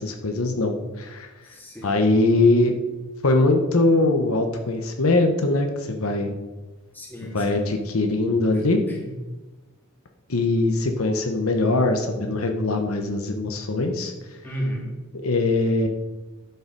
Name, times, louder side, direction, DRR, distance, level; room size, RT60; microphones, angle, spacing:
voice 1, 0.0-1.3 1.8-2.7 3.2-6.3 7.2-8.8 10.3-14.1 15.1-15.9, left 2 dB, 80° left, 4 dB, 1.2 m, -22 dB
voice 2, 1.4-2.0 6.9-7.8 8.5-9.1 14.4-14.9, equal, 10° left, -3 dB, 2.5 m, -34 dB
12.0 x 7.1 x 5.3 m, 1.2 s
head